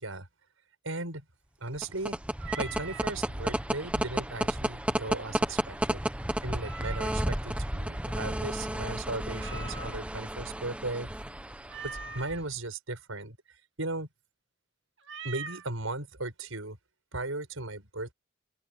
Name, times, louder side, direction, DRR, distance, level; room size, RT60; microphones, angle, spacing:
voice 1, 0.8-1.2 1.6-2.2 2.6-6.1 6.4-11.1 11.8-13.4 13.8-14.1 15.2-16.8 17.1-18.1, right 2 dB, 90° right, 6.4 m, -37 dB
sound 1, 1.7-12.4, right 1 dB, 5° right, 0.9 m, -32 dB
Meow, 2.4-3.1 6.6-7.4 9.4-10.2 11.7-12.4 15.0-15.7, right 4 dB, 65° right, 2.2 m, -42 dB
open air
head